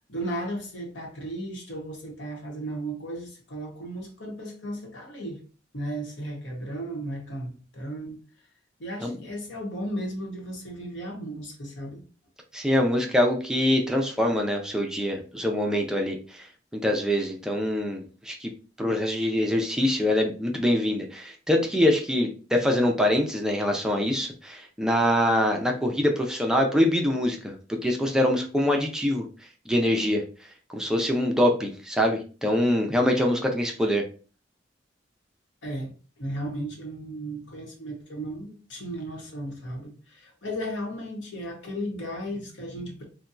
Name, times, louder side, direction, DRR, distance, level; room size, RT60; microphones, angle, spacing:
voice 1, 0.0-5.4 5.7-8.2 8.8-12.0 35.6-43.0, right 1 dB, 85° left, 1.0 m, -35 dB
voice 2, 12.5-16.5 16.7-18.5 18.8-29.2 29.7-30.2 30.7-34.0, left 1 dB, 5° right, 0.4 m, -24 dB
4.1 x 2.2 x 2.4 m
head